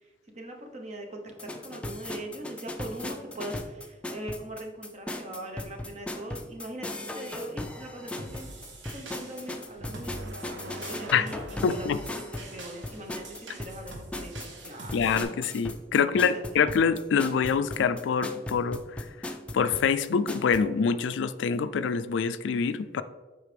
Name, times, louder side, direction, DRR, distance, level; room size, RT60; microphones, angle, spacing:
voice 1, 0.3-8.5 8.9-12.0 12.5-15.4 15.9-16.6, right 1 dB, 40° right, 2 dB, 0.9 m, -41 dB
sound 1, 1.3-20.6, left 1 dB, 5° left, 0.4 m, -38 dB
sound 2, 8.2-15.2, right 2 dB, 90° right, 1.2 m, -45 dB
sound 3, 9.8-13.8, right 2 dB, 60° right, 0.7 m, -45 dB
voice 2, 11.6-12.0 14.9-18.8 19.5-23.0, left 6 dB, 75° left, 13 dB, 0.3 m, -25 dB
8.0 x 4.9 x 3.4 m, 1.3 s
head